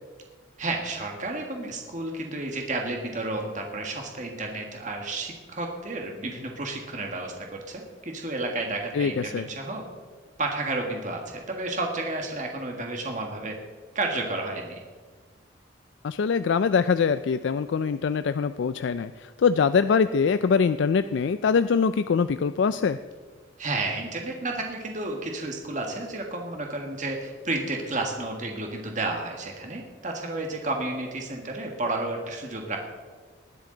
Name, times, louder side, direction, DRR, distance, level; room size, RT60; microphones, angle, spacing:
voice 1, 0.6-9.8 10.4-13.5 13.9-14.8 23.6-32.8, right 2 dB, 40° right, 2 dB, 1.6 m, -31 dB
voice 2, 8.9-9.5 16.0-23.0, left 6 dB, 65° left, 12 dB, 0.3 m, -23 dB
20.0 x 11.5 x 3.9 m, 1.5 s
head